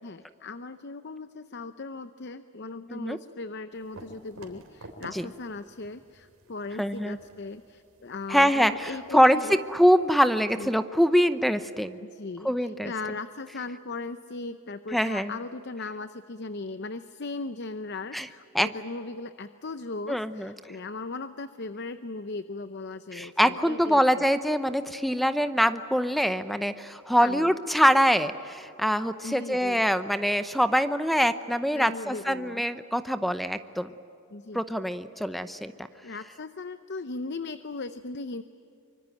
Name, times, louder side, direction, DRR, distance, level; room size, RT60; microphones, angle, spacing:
voice 1, 0.0-9.6 10.6-10.7 12.0-24.2 27.2-27.6 29.2-29.9 31.7-32.6 34.3-34.6 36.0-38.4, left 3 dB, 50° left, 12 dB, 0.7 m, -38 dB
sound 1, 3.7-10.1, right 1 dB, 80° right, 3.5 m, -51 dB
voice 2, 6.8-7.2 8.3-12.0 12.4-12.9 14.9-15.3 18.1-18.3 18.5-18.7 20.1-20.5 23.1-33.9 34.5-35.7, equal, ahead, 11 dB, 0.7 m, -24 dB
24.5 x 24.5 x 9.2 m, 2.6 s
head